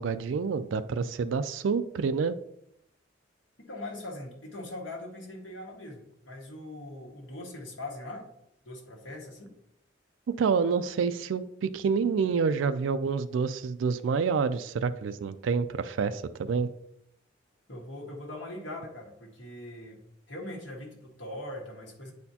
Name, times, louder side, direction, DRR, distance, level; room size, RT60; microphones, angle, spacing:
voice 1, 0.0-2.4 10.4-16.7, right 5 dB, 85° right, 11 dB, 0.4 m, -28 dB
voice 2, 3.7-8.2 8.6-9.5 17.7-20.0 20.3-22.1, left 1 dB, 85° left, -1 dB, 1.6 m, -41 dB
8.8 x 4.3 x 2.8 m, 0.76 s
head